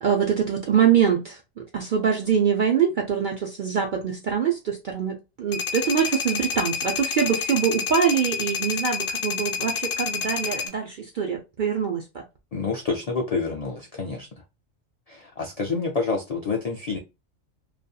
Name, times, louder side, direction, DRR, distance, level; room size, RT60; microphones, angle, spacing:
voice 1, 0.0-12.2, right 7 dB, 65° right, 0.5 m, -24 dB
sound 1, 5.5-10.7, left 5 dB, 60° left, 0.7 m, -28 dB
voice 2, 12.5-14.3 15.1-17.0, left 4 dB, 75° left, 0.3 m, -28 dB
2.7 x 2.4 x 2.2 m
omnidirectional pair, 1.3 m